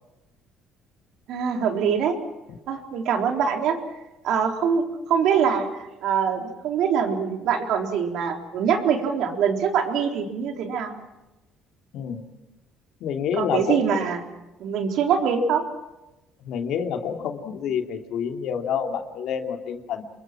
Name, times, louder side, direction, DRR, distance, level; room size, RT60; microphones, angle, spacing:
voice 1, 1.3-2.1 2.7-3.8 4.2-10.9 13.4-14.2 14.6-15.6, right 7 dB, 70° right, 3 dB, 3.9 m, -24 dB
voice 2, 13.0-13.9 16.4-20.0, left 7 dB, 70° left, 4 dB, 2.9 m, -28 dB
27.5 x 23.0 x 6.1 m, 0.99 s
cardioid pair, 110°, 0 cm